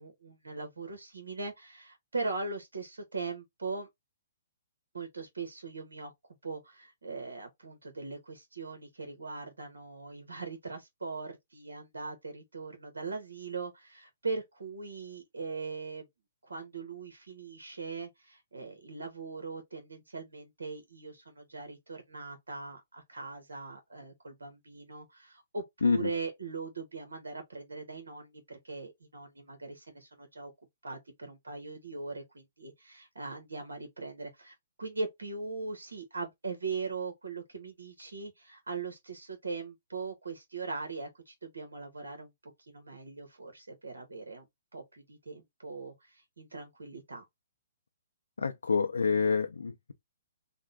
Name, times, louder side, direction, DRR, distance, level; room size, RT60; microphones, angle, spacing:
voice 1, 0.0-3.9 4.9-16.1 16.4-30.5 30.8-44.5 44.7-47.3, right 4 dB, 85° right, 1.1 m, -40 dB
voice 2, 48.4-49.9, left 5 dB, 85° left, 0.5 m, -27 dB
3.6 x 2.2 x 3.5 m
hypercardioid pair, 135°, 0 cm